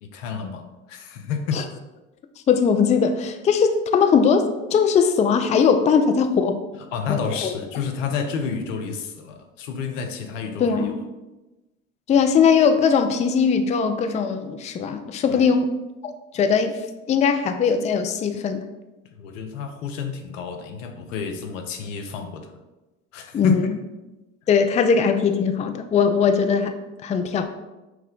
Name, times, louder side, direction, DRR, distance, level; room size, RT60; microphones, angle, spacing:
voice 1, 0.0-1.6 6.9-10.9 15.3-15.5 19.1-22.6 23.1-23.6, left 6 dB, 85° left, 5 dB, 0.6 m, -30 dB
voice 2, 2.5-6.6 7.4-7.5 10.6-11.0 12.1-15.7 16.0-16.8 17.1-18.6 23.3-23.7 24.5-26.8 27.0-27.5, left 6 dB, 20° left, 7 dB, 0.3 m, -20 dB
5.8 x 2.1 x 3.7 m, 1.1 s
hypercardioid pair, 70°, 37 cm